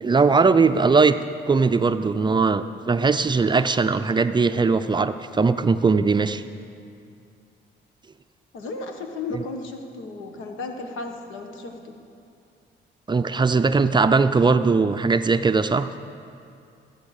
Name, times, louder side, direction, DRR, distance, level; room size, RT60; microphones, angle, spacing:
voice 1, 0.0-1.2 1.5-6.4 9.3-9.4 13.1-15.9, right 4 dB, 25° right, 10 dB, 0.4 m, -20 dB
voice 2, 8.5-11.9, left 3 dB, 85° left, 4 dB, 1.3 m, -34 dB
14.5 x 8.1 x 6.5 m, 2.5 s
cardioid pair, 90°, 20 cm